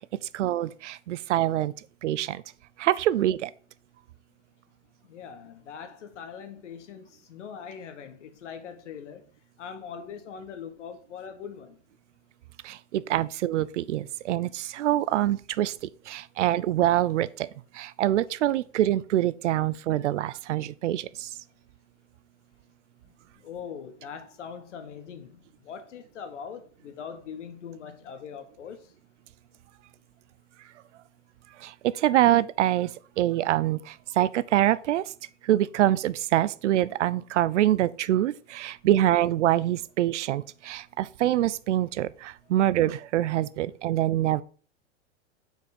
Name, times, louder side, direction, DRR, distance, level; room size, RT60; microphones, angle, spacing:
voice 1, 0.3-1.7 2.0-2.4 2.8-3.5 12.6-15.7 16.1-17.5 17.7-21.3 31.6-32.9 33.2-35.0 35.4-44.4, right 13 dB, 85° right, 0.5 m, -25 dB
voice 2, 5.1-9.2 9.6-11.7 23.4-28.8, left 7 dB, 85° left, 1.1 m, -41 dB
4.7 x 4.4 x 5.0 m
hypercardioid pair, 115°, 35 cm